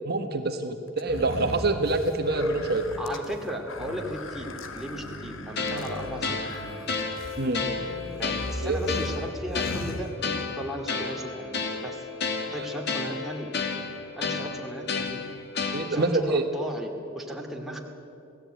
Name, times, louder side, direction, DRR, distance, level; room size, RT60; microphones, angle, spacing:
voice 1, 0.0-2.9 7.4-7.6 8.6-8.8 12.6-12.7 15.7-16.5, right 2 dB, 50° right, 5 dB, 1.4 m, -26 dB
sound 1, 1.0-10.7, left 1 dB, 70° left, 2.0 m, -38 dB
voice 2, 3.0-6.8 8.2-12.1 12.5-13.5 14.2-15.3 15.9-17.8, equal, ahead, 0 dB, 2.6 m, -36 dB
sound 2, 5.6-16.2, left 4 dB, 50° left, 2.4 m, -32 dB
27.5 x 17.5 x 9.2 m, 2.8 s
head